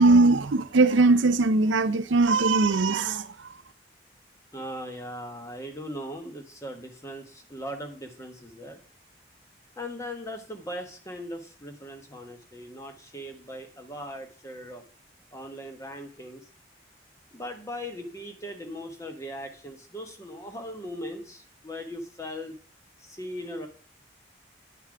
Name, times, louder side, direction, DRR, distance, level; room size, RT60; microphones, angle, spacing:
voice 1, 0.0-3.5, right 3 dB, 85° right, 0.6 m, -20 dB
voice 2, 4.5-8.8 9.8-14.8 15.3-16.5 17.3-22.6 23.0-23.7, equal, 15° left, 1.2 m, -39 dB
9.3 x 5.8 x 4.8 m
head